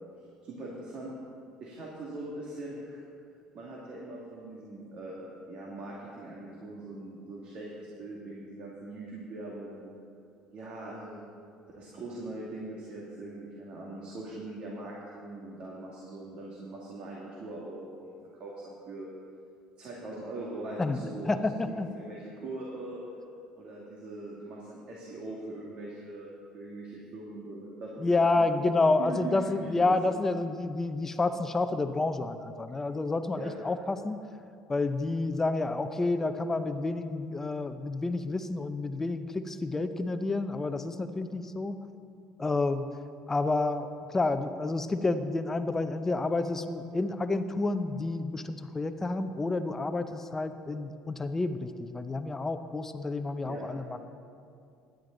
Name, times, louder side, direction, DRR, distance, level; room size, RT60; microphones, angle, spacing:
voice 1, 0.4-1.1 1.6-3.0 3.5-9.9 10.5-11.2 11.8-19.1 19.8-23.0 23.5-30.1 33.4-33.5 53.4-53.7, right 2 dB, 55° right, -4 dB, 2.3 m, -41 dB
voice 2, 20.8-21.9 28.0-34.2 34.7-41.8 42.4-42.9 43.3-54.1, left 3 dB, 20° left, 9 dB, 0.7 m, -29 dB
16.5 x 10.5 x 4.0 m, 2.4 s
supercardioid pair, 105°, 2 cm